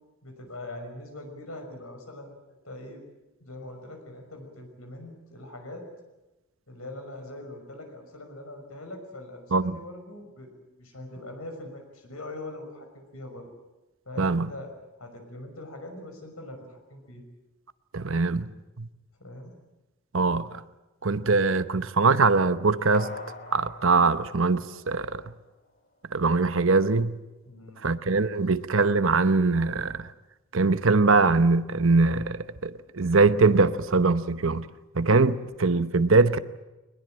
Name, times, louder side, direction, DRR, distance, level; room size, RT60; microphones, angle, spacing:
voice 1, 0.2-3.0 3.4-5.9 6.7-10.5 10.8-13.5 14.1-14.7 15.0-17.2 19.2-19.5 27.4-27.9, left 1 dB, 80° left, 6.0 m, -42 dB
voice 2, 14.2-14.5 17.9-18.5 18.8-18.9 20.1-20.5 21.0-23.1 23.5-25.2 26.1-27.1 27.8-30.1 30.5-34.7 34.9-36.4, right 3 dB, 65° right, 0.9 m, -22 dB
sound 1, 22.9-25.5 25.9-26.0, left 2 dB, 50° left, 2.3 m, -43 dB
22.5 x 20.5 x 8.9 m
head